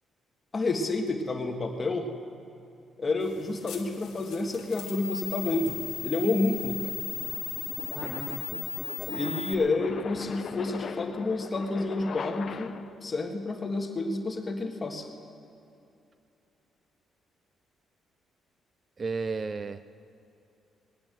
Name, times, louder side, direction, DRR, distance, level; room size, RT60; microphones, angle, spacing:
voice 1, 0.5-2.1 3.0-6.9 9.1-12.7 13.0-15.1, left 2 dB, 30° left, 3 dB, 1.7 m, -29 dB
sound 1, 3.2-9.5, left 9 dB, 80° left, 1.3 m, -37 dB
sound 2, 5.5-13.1, left 6 dB, 50° left, 0.5 m, -41 dB
voice 2, 8.0-8.7 19.0-19.8, right 4 dB, 35° right, 12 dB, 0.4 m, -34 dB
19.5 x 9.0 x 7.6 m, 2.6 s
cardioid pair, 90°, 0 cm